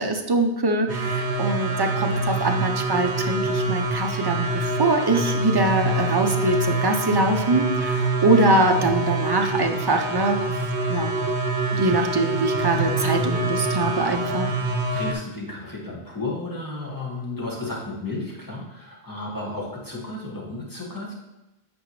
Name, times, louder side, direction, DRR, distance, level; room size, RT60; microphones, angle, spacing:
voice 1, 0.0-10.6 10.9-11.1 11.8-14.5, right 2 dB, 35° right, 4 dB, 0.4 m, -23 dB
sound 1, 0.9-15.1, right 2 dB, 80° right, 1.0 m, -25 dB
voice 2, 14.9-21.1, left 2 dB, 20° left, -5 dB, 1.7 m, -33 dB
8.4 x 5.0 x 3.1 m, 0.99 s
omnidirectional pair, 1.1 m